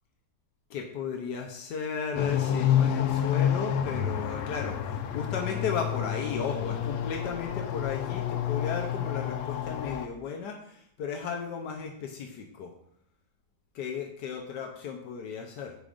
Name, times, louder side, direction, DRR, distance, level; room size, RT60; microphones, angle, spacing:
voice 1, 0.7-12.7 13.7-15.8, left 6 dB, 85° left, 2 dB, 1.4 m, -35 dB
sound 1, 2.1-10.1, left 9 dB, 70° left, 0.7 m, -29 dB
14.5 x 5.0 x 2.5 m, 0.70 s
omnidirectional pair, 1.8 m